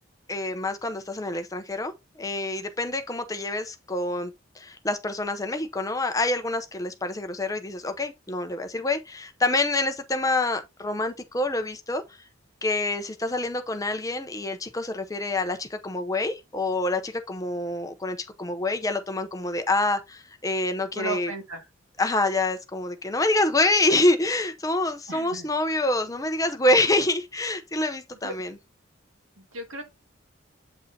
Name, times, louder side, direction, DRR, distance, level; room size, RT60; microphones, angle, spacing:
voice 1, 0.3-12.2 12.6-21.3 22.0-28.6, left 2 dB, 15° left, 0.7 m, -26 dB
voice 2, 20.9-21.6 25.1-25.5 28.2-28.3 29.4-29.8, right 2 dB, 85° right, 2.1 m, -35 dB
8.2 x 5.4 x 2.8 m
head